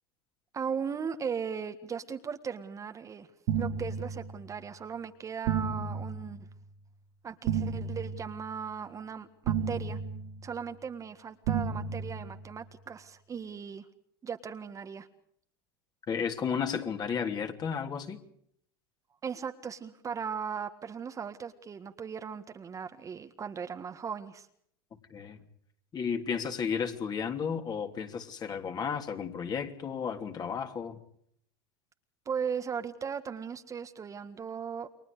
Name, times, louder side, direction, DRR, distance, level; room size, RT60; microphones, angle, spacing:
voice 1, 0.5-3.3 3.6-6.5 7.2-10.0 10.4-13.8 14.2-15.1 19.2-24.5 32.2-34.9, right 6 dB, 25° right, 1.7 m, -37 dB
sound 1, 3.5-4.7 5.5-6.7 7.5-8.7 9.5-10.7 11.5-12.7, right 6 dB, 65° right, 2.7 m, -33 dB
voice 2, 16.1-18.2 25.1-25.4 25.9-31.0, left 6 dB, 30° left, 3.1 m, -33 dB
30.0 x 23.0 x 5.0 m
hypercardioid pair, 110°, 13 cm